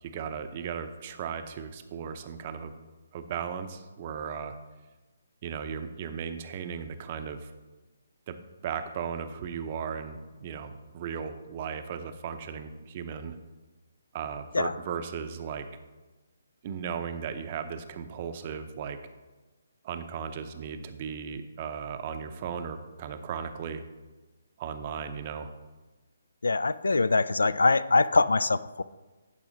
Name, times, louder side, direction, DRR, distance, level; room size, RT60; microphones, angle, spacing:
voice 1, 0.0-2.7 3.1-4.6 5.4-7.5 8.3-8.4 8.6-13.4 14.1-15.7 16.6-19.0 19.8-23.8 24.6-25.5, right 7 dB, 35° right, 9 dB, 0.6 m, -36 dB
voice 2, 26.4-28.8, left 3 dB, 70° left, 17 dB, 0.3 m, -23 dB
11.0 x 4.9 x 3.9 m, 1.2 s
figure-of-eight pair, 140°, 0 cm